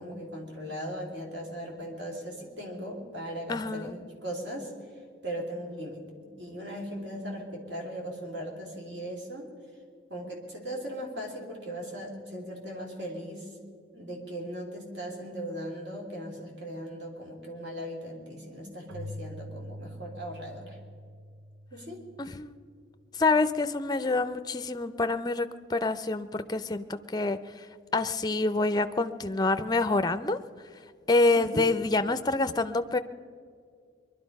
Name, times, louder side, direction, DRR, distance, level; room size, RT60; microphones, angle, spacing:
voice 1, 0.0-4.7 5.2-9.5 10.1-13.5 13.9-20.8 21.7-22.0 31.3-31.7, equal, 60° right, 0 dB, 3.1 m, -38 dB
voice 2, 3.5-4.0 22.2-22.5 23.1-27.7 27.9-30.4 31.1-33.0, left 3 dB, 20° left, 10 dB, 0.5 m, -27 dB
Keyboard (musical), 18.9-22.4, left 1 dB, 90° right, 1.2 m, -44 dB
22.0 x 12.0 x 5.3 m, 2.1 s
head